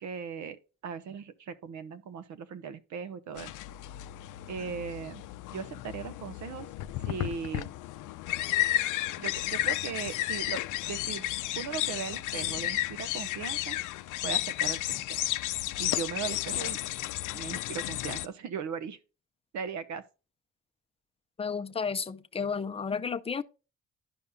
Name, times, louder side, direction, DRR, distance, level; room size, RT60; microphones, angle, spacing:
voice 1, 0.0-3.6 4.5-5.2 5.5-6.7 7.0-7.7 9.2-11.3 11.6-13.8 14.2-15.2 15.8-16.8 17.3-19.0 19.5-20.0, right 6 dB, 70° right, 0.9 m, -38 dB
sound 1, 3.4-18.3, left 15 dB, 85° left, 0.5 m, -33 dB
voice 2, 21.4-23.4, left 5 dB, 20° left, 0.5 m, -32 dB
11.5 x 5.4 x 2.2 m
cardioid pair, 90°, 30 cm